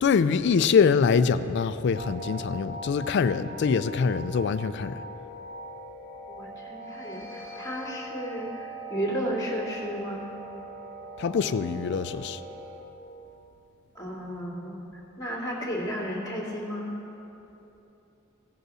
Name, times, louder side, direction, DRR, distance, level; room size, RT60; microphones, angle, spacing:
voice 1, 0.0-5.0 11.2-12.4, left 5 dB, 60° left, 12 dB, 0.3 m, -24 dB
sound 1, 1.9-12.8, right 1 dB, 60° right, 2.4 m, -41 dB
voice 2, 6.3-10.2 13.9-14.8 15.2-16.9, equal, 20° left, -7 dB, 2.4 m, -33 dB
16.0 x 5.4 x 6.2 m, 3.0 s
head